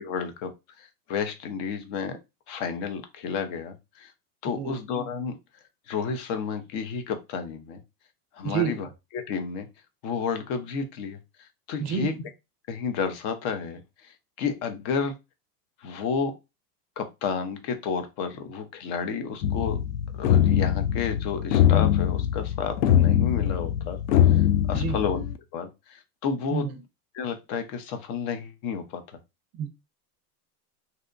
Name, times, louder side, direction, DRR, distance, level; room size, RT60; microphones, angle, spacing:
voice 1, 0.0-2.2 2.5-4.1 4.4-5.4 5.9-7.8 8.3-8.9 9.1-9.7 10.0-12.1 12.7-15.2 15.8-16.4 17.0-19.8 20.2-24.0 24.3-25.2 25.5-26.7 27.1-29.2, left 6 dB, 50° left, 0.7 m, -31 dB
voice 2, 8.4-8.8 11.8-12.2 24.7-25.0 26.5-26.8 29.5-29.7, right 7 dB, 35° right, 0.5 m, -28 dB
sound 1, 19.4-25.4, left 10 dB, 85° left, 0.5 m, -22 dB
2.8 x 2.1 x 2.4 m
supercardioid pair, 125°, 46 cm